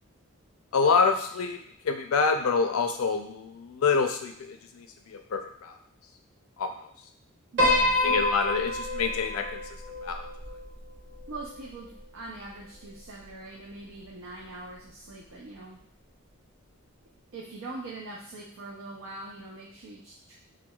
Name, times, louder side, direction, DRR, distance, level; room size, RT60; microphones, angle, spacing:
voice 1, 0.7-1.6 1.8-5.7 6.6-6.7 8.0-9.6 10.0-10.3, left 5 dB, 85° left, 6 dB, 0.4 m, -26 dB
voice 2, 7.5-8.2 11.3-15.8 17.3-20.3, right 2 dB, 70° right, -3 dB, 0.5 m, -42 dB
Piano, 7.6-12.0, left 1 dB, 55° right, 0.9 m, -28 dB
4.5 x 2.2 x 2.3 m, 0.69 s
head